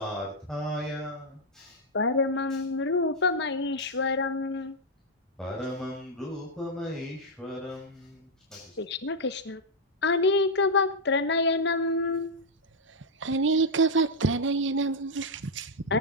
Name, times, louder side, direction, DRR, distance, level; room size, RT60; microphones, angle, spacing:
voice 1, 0.0-1.8 3.8-3.9 5.4-8.7, equal, 5° left, 5.7 m, -36 dB
voice 2, 1.9-4.8 8.8-9.6 10.0-12.4 15.9-16.0, left 3 dB, 60° left, 1.2 m, -26 dB
voice 3, 13.2-16.0, right 3 dB, 80° right, 1.0 m, -26 dB
21.0 x 11.0 x 4.1 m
head